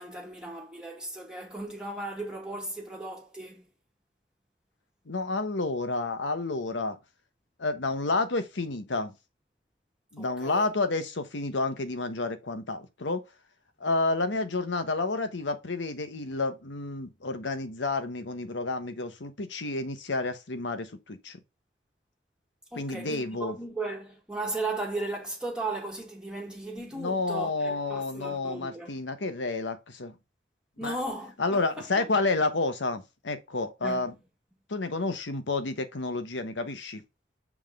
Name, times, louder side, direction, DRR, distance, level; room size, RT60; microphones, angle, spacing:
voice 1, 0.0-3.7 10.2-10.7 22.7-28.9 30.8-32.0 33.8-34.0, right 2 dB, 5° right, 1.4 m, -36 dB
voice 2, 5.1-7.0 7.6-9.1 10.1-13.2 13.8-21.4 22.8-23.6 26.9-30.1 30.8-31.0 31.4-34.1 34.7-37.0, left 3 dB, 85° left, 1.1 m, -30 dB
7.2 x 3.6 x 3.6 m
head